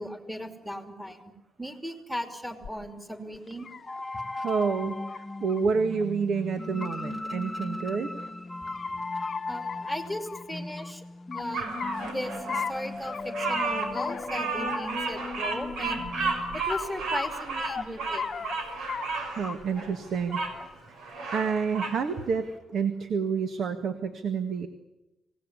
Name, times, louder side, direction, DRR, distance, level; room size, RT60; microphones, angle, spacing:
voice 1, 0.0-1.3 1.6-3.7 9.5-11.0 11.3-16.1 16.5-18.3, equal, ahead, 6 dB, 2.8 m, -37 dB
sound 1, 2.6-2.7 3.3-4.0 5.1-5.2 5.5-5.6 6.0-6.1 6.6-7.1 8.2-8.9 9.2-9.4 9.7-10.9 11.3-12.1 12.5-12.7 13.1-13.2 13.5-14.3 14.7-15.0 15.4-15.5 15.9-16.0 16.3-16.4 16.7-16.9 17.2-17.8 18.2-18.5 18.9-19.1 19.4-19.8 20.1-20.7 21.5-22.0, left 6 dB, 40° left, 1.0 m, -36 dB
sound 2, 3.9-16.6, left 2 dB, 20° left, 1.1 m, -37 dB
voice 2, 4.4-8.1 19.3-20.4 21.0-24.7, right 5 dB, 60° right, 9 dB, 1.7 m, -29 dB
Bird vocalization bird call bird song, 11.5-20.5 21.0-22.0, right 4 dB, 80° right, 5.6 m, -33 dB
26.5 x 18.5 x 9.9 m, 1.0 s
cardioid pair, 125°, 0 cm